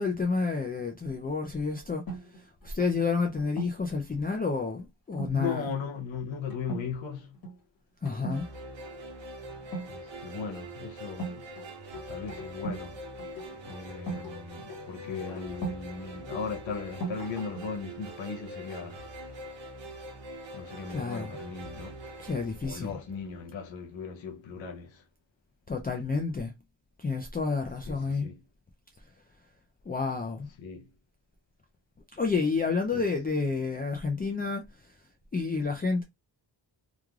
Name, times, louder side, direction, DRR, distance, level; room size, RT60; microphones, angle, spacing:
voice 1, 0.0-2.0 2.6-5.7 8.0-8.4 20.9-21.3 22.2-22.9 25.7-26.5 27.0-28.3 29.9-30.5 32.1-34.6 35.3-36.0, left 4 dB, 20° left, 0.4 m, -29 dB
sound 1, 2.1-3.9 5.1-5.4 5.8-6.1 6.5-6.9 7.2-7.6 8.0-8.4 9.6-10.4 11.2-12.9 13.2-15.8 16.3-17.8, right 2 dB, 50° left, 1.3 m, -39 dB
voice 2, 5.3-7.4 9.9-11.4 12.1-13.0 13.6-19.0 20.5-22.0 22.6-25.1 27.8-28.4 30.6-30.9 32.9-33.1, left 5 dB, 80° left, 0.8 m, -37 dB
sound 2, 8.3-23.6, right 1 dB, 70° right, 0.9 m, -44 dB
3.2 x 2.4 x 2.3 m
wide cardioid pair, 105°, 46 cm